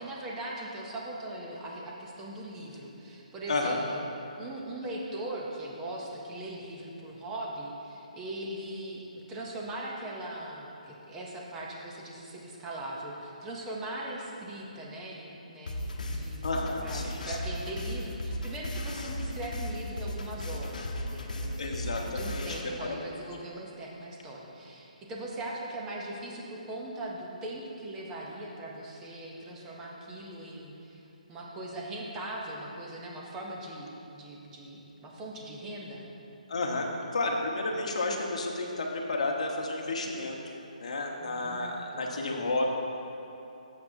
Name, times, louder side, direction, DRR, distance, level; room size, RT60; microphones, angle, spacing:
voice 1, 0.0-4.1 4.4-16.5 16.8-31.0 31.3-36.0 41.2-42.5, right 1 dB, 5° right, -3 dB, 0.5 m, -40 dB
voice 2, 3.5-3.8 16.4-17.4 21.6-22.5 22.8-23.3 36.5-36.9 37.1-40.4 40.8-42.7, left 2 dB, 50° left, 0 dB, 1.0 m, -31 dB
sound 1, 15.7-22.6, left 1 dB, 75° left, 0.9 m, -35 dB
11.5 x 7.3 x 2.6 m, 2.9 s
hypercardioid pair, 180°, 4 cm